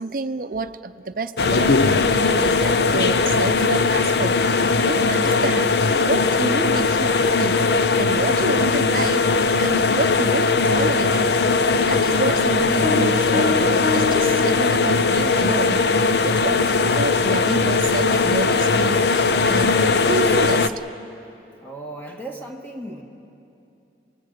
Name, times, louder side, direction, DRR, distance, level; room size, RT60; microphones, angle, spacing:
voice 1, 0.0-5.7 6.0-7.7 8.0-11.3 11.9-15.9 16.2-20.7, right 3 dB, 50° right, 0.6 m, -29 dB
sound 1, 1.4-20.7, left 4 dB, 70° left, 0.6 m, -19 dB
Piano, 12.8-15.2, left 5 dB, 50° left, 1.1 m, -27 dB
voice 2, 21.6-23.0, right 1 dB, 10° left, 1.6 m, -36 dB
27.0 x 19.0 x 6.6 m
head